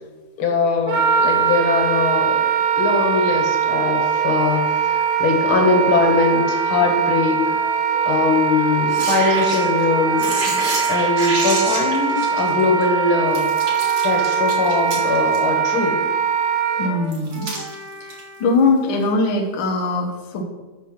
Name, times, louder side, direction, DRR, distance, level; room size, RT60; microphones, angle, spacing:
voice 1, 0.4-2.5 2.8-7.4 8.0-10.6 10.9-13.5 14.0-16.0, left 4 dB, 60° left, 2 dB, 1.6 m, -21 dB
Wind instrument woodwind instrument, 0.9-16.9, right 7 dB, 80° right, 2.5 m, -21 dB
sound 1, 3.7-18.5, left 2 dB, 40° right, 2.4 m, -38 dB
sound 2, 8.9-9.8 10.2-12.8 13.3-15.4 17.1-18.2 19.0-19.1, right 3 dB, 60° right, 2.9 m, -28 dB
voice 2, 16.8-17.5 18.0-20.4, left 3 dB, 75° left, 0 dB, 1.1 m, -21 dB
6.3 x 6.2 x 5.7 m, 1.2 s
omnidirectional pair, 3.4 m